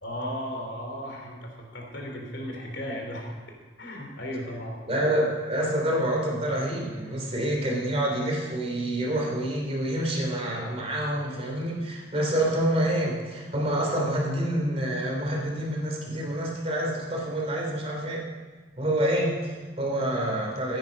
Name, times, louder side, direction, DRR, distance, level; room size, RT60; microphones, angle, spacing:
voice 1, 0.0-3.3 3.8-4.7, equal, 65° left, 1 dB, 3.2 m, -35 dB
voice 2, 4.9-18.2 18.8-20.8, right 1 dB, 30° right, -1 dB, 3.0 m, -27 dB
15.5 x 9.8 x 5.3 m, 1.3 s
head